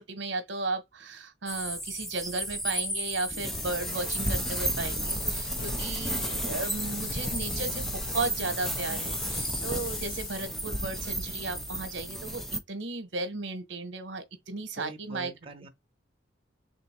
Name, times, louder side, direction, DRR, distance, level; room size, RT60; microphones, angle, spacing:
voice 1, 0.0-15.3, right 3 dB, 65° right, 1.0 m, -35 dB
sound 1, 1.5-12.6, right 1 dB, ahead, 0.4 m, -33 dB
Wind, 3.5-10.5, left 4 dB, 50° left, 0.9 m, -40 dB
voice 2, 6.1-6.6 14.8-15.7, right 3 dB, 30° right, 0.8 m, -45 dB
3.4 x 2.6 x 4.3 m
head